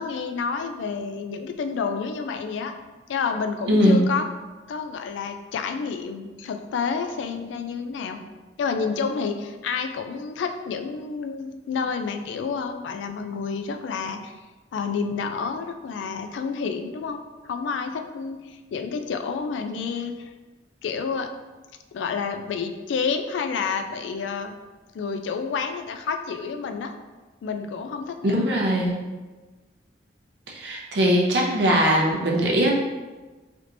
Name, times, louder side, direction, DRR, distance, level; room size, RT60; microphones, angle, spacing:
voice 1, 0.0-2.7 3.1-4.2 4.7-8.2 8.6-14.3 14.7-17.2 17.5-20.3 20.8-21.3 21.9-24.5 24.9-26.9 27.4-28.5, left 5 dB, 85° left, 6 dB, 0.3 m, -29 dB
voice 2, 3.7-4.0 28.2-29.0 30.5-32.7, equal, 70° right, -1 dB, 0.6 m, -20 dB
3.4 x 2.9 x 2.5 m, 1.3 s
head